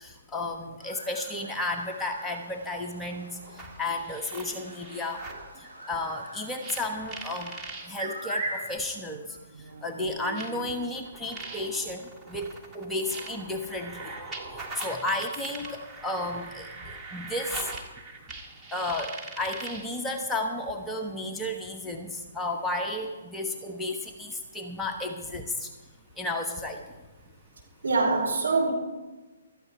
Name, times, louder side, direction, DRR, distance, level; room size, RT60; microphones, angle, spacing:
voice 1, 0.0-3.4 3.8-5.2 5.9-7.5 7.9-9.2 9.8-12.5 12.7-14.0 14.8-17.7 18.7-25.7 26.2-26.8, left 2 dB, 5° left, 2 dB, 1.2 m, -33 dB
sound 1, 0.8-8.8, right 1 dB, 90° right, 4.6 m, -41 dB
sound 2, 3.4-5.5 6.6-7.9 9.0-9.1 10.4-19.9, right 3 dB, 10° right, 1.8 m, -42 dB
voice 2, 9.2-10.7 15.6-15.7 16.8-16.9 27.8-28.7, right 3 dB, 65° right, 0 dB, 4.7 m, -28 dB
16.0 x 13.0 x 4.5 m, 1.2 s
figure-of-eight pair, 130°, 0 cm